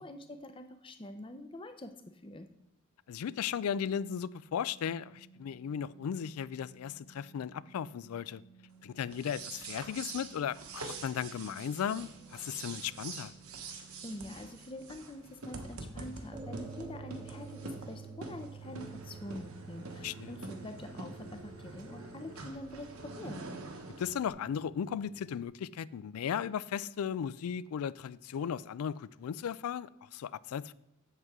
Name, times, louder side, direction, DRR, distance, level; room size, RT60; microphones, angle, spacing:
voice 1, 0.0-1.9 2.2-2.5 14.0-23.4, left 1 dB, 25° left, 0.6 m, -45 dB
voice 2, 3.1-8.4 8.8-13.3 20.0-20.3 24.0-30.7, left 8 dB, 85° left, 0.3 m, -36 dB
Organ, 4.2-14.8, right 6 dB, 5° left, 1.0 m, -60 dB
sound 1, 9.1-24.3, right 3 dB, 75° right, 1.1 m, -46 dB
sound 2, 16.3-25.4, right 5 dB, 25° right, 0.9 m, -50 dB
8.1 x 7.5 x 3.6 m
head